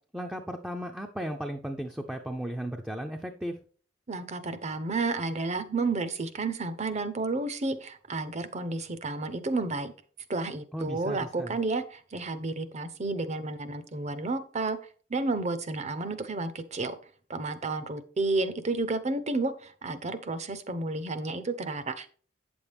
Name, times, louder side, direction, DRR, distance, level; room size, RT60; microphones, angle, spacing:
voice 1, 0.1-3.6 10.7-11.6, equal, 5° right, 3 dB, 0.5 m, -35 dB
voice 2, 4.1-9.9 10.3-14.8 15.1-17.0 17.3-22.1, right 3 dB, 35° right, 13 dB, 0.8 m, -31 dB
8.8 x 7.1 x 3.4 m, 0.43 s
head